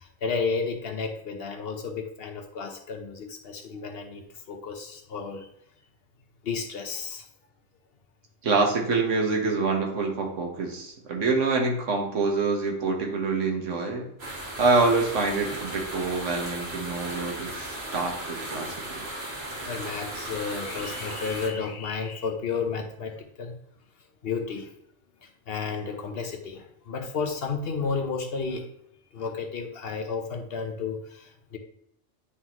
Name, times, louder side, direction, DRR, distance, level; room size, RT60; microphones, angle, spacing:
voice 1, 0.0-5.5 6.4-7.3 19.5-23.5 24.2-24.7 25.2-28.7 29.1-31.6, left 5 dB, 55° left, 4 dB, 1.1 m, -32 dB
voice 2, 8.4-14.1 14.6-19.1, right 3 dB, 75° right, 2 dB, 1.6 m, -26 dB
sound 1, 14.2-21.5, right 1 dB, 55° right, 1.9 m, -36 dB
9.9 x 3.8 x 3.0 m, 0.75 s
omnidirectional pair, 1.3 m